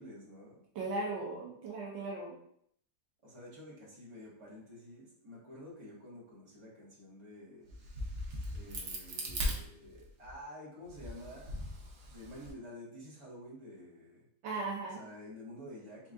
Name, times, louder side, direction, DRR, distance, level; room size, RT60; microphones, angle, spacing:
voice 1, 0.0-0.6 3.2-7.8 8.5-11.6 12.1-14.3 14.8-16.1, left 1 dB, 15° right, -8 dB, 1.4 m, -50 dB
voice 2, 0.7-2.4 14.4-15.0, right 3 dB, 75° right, -2 dB, 1.4 m, -37 dB
Crack, 7.7-10.3 10.9-12.5, equal, 55° right, 0.8 m, -39 dB
4.4 x 3.5 x 2.5 m, 0.68 s
omnidirectional pair, 2.1 m